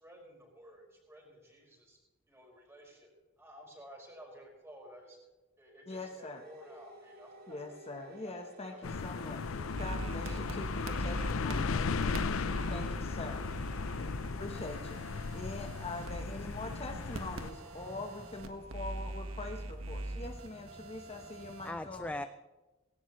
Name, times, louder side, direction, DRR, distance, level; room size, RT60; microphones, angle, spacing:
voice 1, 0.0-2.0 2.3-3.1 3.4-5.2 5.6-7.8 8.2-9.8, equal, 15° right, -1 dB, 5.3 m, -54 dB
voice 2, 5.9-6.4 7.5-9.5 9.8-12.3 12.7-13.4 14.4-15.0 15.3-22.3, left 2 dB, 30° left, 3 dB, 1.1 m, -43 dB
sound 1, 6.2-11.1, right 1 dB, 50° right, 2.9 m, -55 dB
sound 2, 8.8-17.5, left 4 dB, 90° left, 0.6 m, -36 dB
sound 3, 9.8-21.7, right 1 dB, 85° right, 1.5 m, -42 dB
voice 3, 13.8-14.4 15.2-15.8 17.8-17.9 21.6-22.3, left 1 dB, 5° left, 10 dB, 0.4 m, -44 dB
18.5 x 17.0 x 3.2 m, 1.1 s
head